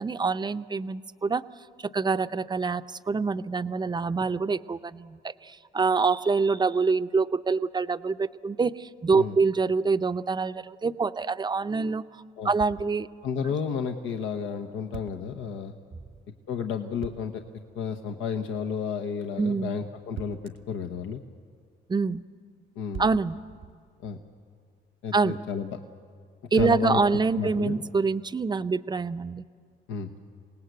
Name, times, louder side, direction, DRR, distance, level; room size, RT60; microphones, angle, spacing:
voice 1, 0.0-1.4 1.9-12.0 12.4-13.1 19.4-19.8 21.9-22.2 23.0-23.4 25.1-25.4 26.5-29.5, right 4 dB, 20° right, 12 dB, 0.6 m, -26 dB
sound 1, 12.6-13.4 14.9-15.5 17.0-17.6 20.2-20.8 22.9-24.3 26.6-27.4, right 8 dB, 75° right, 1.4 m, -43 dB
voice 2, 13.2-15.7 16.5-17.4 17.7-21.2 22.8-23.1 24.0-24.2 25.0-25.8 26.5-27.0 27.4-27.8 29.9-30.1, left 7 dB, 85° left, 4 dB, 1.1 m, -32 dB
27.5 x 18.5 x 8.1 m, 2.1 s
cardioid pair, 90°, 20 cm